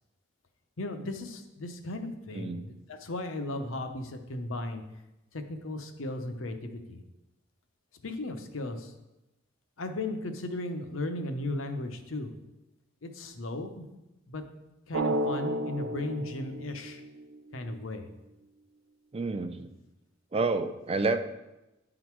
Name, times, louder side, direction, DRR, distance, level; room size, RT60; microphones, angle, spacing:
voice 1, 0.8-4.8 5.3-7.0 8.0-8.9 9.8-12.3 13.0-13.9 14.3-14.4 14.9-17.0 17.5-18.1, left 2 dB, 80° left, 6 dB, 0.8 m, -36 dB
voice 2, 2.3-2.7 19.1-19.7 20.3-21.2, right 3 dB, 30° right, 9 dB, 0.5 m, -29 dB
Drum, 14.9-17.5, right 2 dB, 90° right, 0.4 m, -32 dB
10.0 x 3.9 x 4.6 m, 0.97 s
head